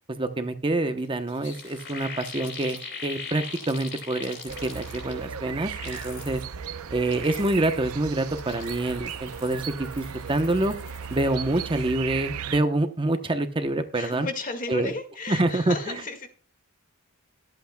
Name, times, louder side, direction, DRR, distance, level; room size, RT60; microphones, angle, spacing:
voice 1, 0.2-6.4 6.9-10.7 11.1-14.3 14.7-14.9 15.3-16.0, right 2 dB, 25° right, 8 dB, 0.8 m, -26 dB
sound 1, 1.0-1.1 1.3-5.3 5.6-6.4 6.9-7.9 8.3-11.3 11.5-11.9, left 5 dB, 55° left, 3.7 m, -41 dB
sound 2, 4.5-12.6, right 7 dB, 75° right, 0.6 m, -36 dB
voice 2, 13.9-16.3, left 3 dB, 40° left, 6 dB, 1.9 m, -34 dB
23.5 x 8.3 x 2.2 m, 0.41 s
head